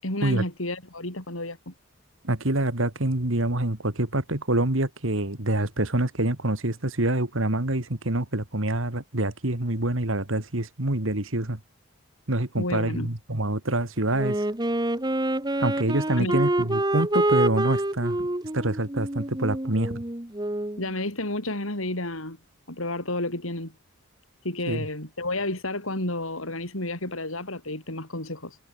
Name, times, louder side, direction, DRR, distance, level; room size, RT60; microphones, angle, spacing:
voice 1, 0.0-1.7 12.6-13.1 16.2-16.4 20.8-22.4 22.7-23.7 24.4-28.6, left 2 dB, 75° left, 6.7 m, -31 dB
voice 2, 2.2-11.6 12.3-14.4 15.6-18.3 18.5-20.0 24.7-24.9, right 1 dB, 65° right, 2.5 m, -26 dB
Wind instrument woodwind instrument, 14.1-20.8, right 1 dB, 20° right, 1.8 m, -27 dB
head